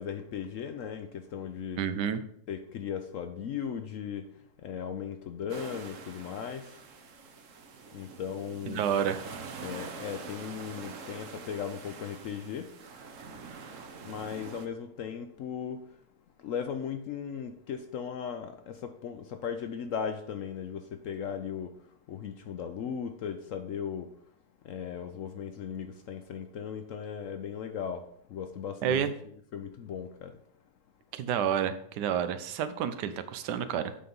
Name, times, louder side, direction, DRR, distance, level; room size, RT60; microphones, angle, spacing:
voice 1, 0.0-1.8 2.5-4.2 4.6-6.6 7.9-8.8 9.6-12.7 14.0-15.8 16.4-21.7 22.1-24.1 24.7-28.0 28.3-30.3, left 7 dB, 65° left, 0.8 m, -37 dB
voice 2, 1.8-2.2 8.7-9.2 28.8-29.1 31.1-34.0, right 8 dB, 85° right, 1.3 m, -29 dB
sound 1, 5.5-14.7, right 4 dB, 55° right, 1.1 m, -45 dB
8.6 x 3.9 x 5.3 m
omnidirectional pair, 1.8 m